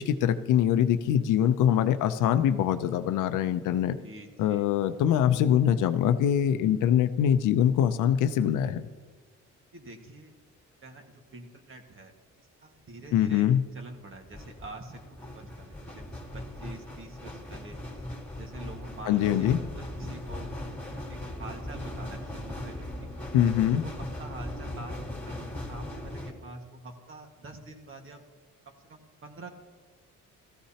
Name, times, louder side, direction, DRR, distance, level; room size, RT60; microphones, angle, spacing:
voice 1, 0.0-4.0 4.4-8.9 13.1-13.6 19.1-19.6 23.3-23.8, left 10 dB, 90° left, 10 dB, 0.6 m, -23 dB
voice 2, 4.0-4.7 9.7-10.3 10.8-12.1 12.6-13.5 13.7-18.0 18.3-20.5 21.1-23.2 23.8-28.2 28.7-29.5, right 2 dB, 45° right, 4 dB, 1.7 m, -46 dB
sound 1, 12.9-13.1 14.1-26.3, left 1 dB, 5° left, 2.5 m, -39 dB
14.5 x 14.0 x 2.9 m, 1.5 s
cardioid pair, 90°, 30 cm